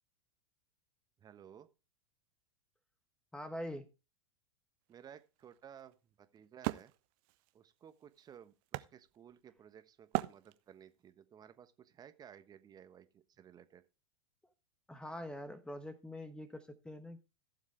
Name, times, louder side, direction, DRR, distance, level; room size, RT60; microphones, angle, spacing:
voice 1, 1.2-1.7 4.9-6.9 7.5-13.8, right 9 dB, 25° right, 1.2 m, -57 dB
voice 2, 3.3-3.9 14.9-17.2, left 1 dB, 5° left, 1.1 m, -44 dB
Wood, 4.9-9.6 10.1-11.0, right 21 dB, 50° right, 0.7 m, -41 dB
16.0 x 7.3 x 3.3 m
figure-of-eight pair, 95°, 15 cm